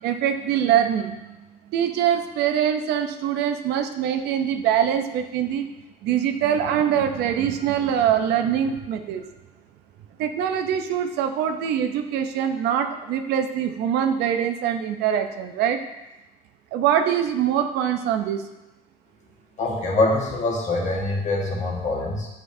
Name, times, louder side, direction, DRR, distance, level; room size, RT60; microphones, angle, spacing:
voice 1, 0.0-1.4 1.7-5.7 6.0-9.3 10.2-15.8 16.7-18.5, right 9 dB, 80° right, 7 dB, 0.6 m, -23 dB
voice 2, 19.6-22.3, left 2 dB, 45° left, -1 dB, 1.5 m, -24 dB
7.7 x 5.1 x 2.7 m, 1.0 s
cardioid pair, 110°, 17 cm